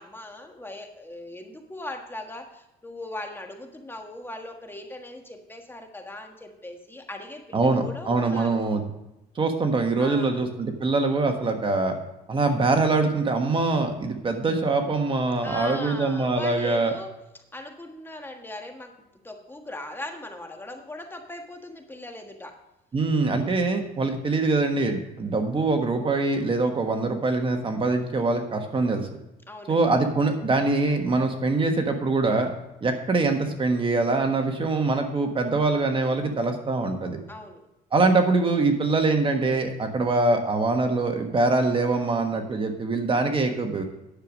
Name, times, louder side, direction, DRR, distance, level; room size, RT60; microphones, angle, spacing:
voice 1, 0.0-8.6 10.0-10.4 15.4-17.1 17.5-22.6 29.5-29.8 37.3-37.6, left 1 dB, 15° left, 4 dB, 1.5 m, -39 dB
voice 2, 7.5-8.8 9.3-11.9 12.3-16.9 22.9-29.1 29.7-32.5 32.8-37.2 37.9-43.8, right 3 dB, 30° right, 5 dB, 1.4 m, -23 dB
10.5 x 6.9 x 6.2 m, 0.92 s
cardioid pair, 110°, 17 cm